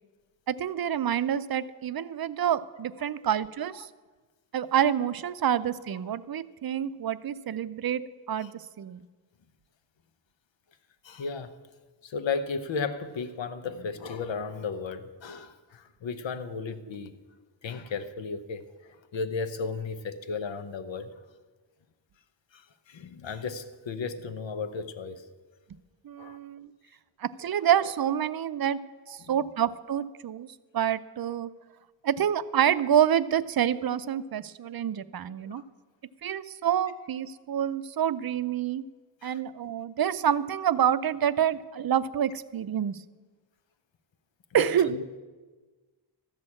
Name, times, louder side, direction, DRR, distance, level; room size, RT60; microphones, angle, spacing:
voice 1, 0.5-3.9 4.5-8.0 8.3-8.5 8.8-9.0 26.0-26.7 27.2-28.8 29.1-30.5 30.7-31.5 32.0-35.6 36.2-38.8 39.2-43.0 44.5-44.9, right 9 dB, 55° right, 0.5 m, -27 dB
voice 2, 11.0-11.6 12.0-17.1 17.6-21.1 22.5-25.3 26.2-26.4 29.2-29.4 35.4-35.6 39.2-39.4 44.5-45.2, left 5 dB, 85° left, 0.9 m, -35 dB
13.5 x 6.3 x 8.6 m
wide cardioid pair, 115°, 44 cm